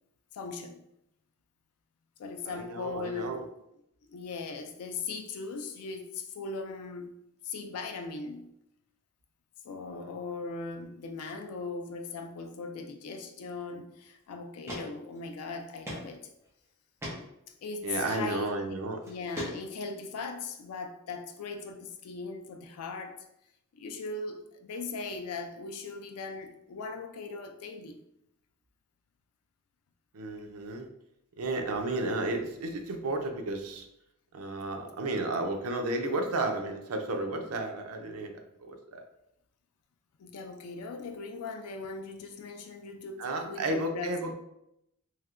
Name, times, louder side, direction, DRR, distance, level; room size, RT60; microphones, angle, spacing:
voice 1, 0.3-0.8 2.2-3.4 4.1-7.1 7.4-8.5 9.6-16.3 17.6-18.8 19.0-23.2 23.7-28.0 40.2-44.3, left 4 dB, 85° left, 0.3 m, -39 dB
voice 2, 2.5-3.5 17.8-19.0 30.1-30.9 31.4-33.9 34.3-38.3 38.6-39.0 43.2-44.3, right 2 dB, 85° right, 0.5 m, -32 dB
sound 1, 14.0-14.1 14.7-14.8 15.2-15.3 15.9-16.0 16.4-16.5 17.0-17.2 18.3-18.5 19.0-19.9, equal, 10° right, 0.7 m, -37 dB
3.2 x 2.7 x 2.4 m
head